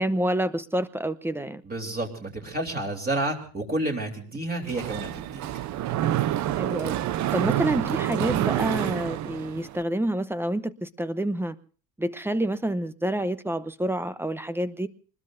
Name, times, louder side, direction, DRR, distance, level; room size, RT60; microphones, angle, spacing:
voice 1, 0.0-1.6 6.6-7.0 7.3-11.5 12.0-14.9, right 1 dB, 5° right, 13 dB, 0.8 m, -28 dB
voice 2, 1.6-5.4, right 1 dB, 20° right, 1 dB, 3.3 m, -30 dB
Mechanisms, 4.6-9.8, right 13 dB, 45° right, 0.7 m, -28 dB
26.5 x 21.0 x 2.6 m, 0.40 s
cardioid pair, 135°, 40 cm